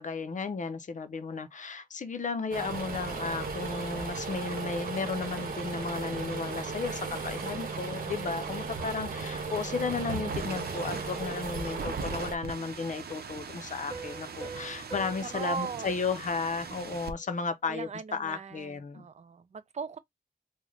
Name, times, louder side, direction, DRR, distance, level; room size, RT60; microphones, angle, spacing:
voice 1, 0.0-19.1, left 4 dB, 55° left, 0.5 m, -34 dB
sound 1, 2.5-12.4, right 4 dB, 60° right, 0.9 m, -36 dB
sound 2, 2.6-17.1, right 6 dB, 85° right, 0.6 m, -43 dB
voice 2, 8.9-9.2 15.2-15.9 16.7-17.0 17.7-20.0, right 5 dB, 45° right, 0.4 m, -39 dB
Piano, 13.9-17.3, right 4 dB, 10° right, 1.1 m, -45 dB
3.1 x 2.1 x 3.8 m
wide cardioid pair, 140°, 16 cm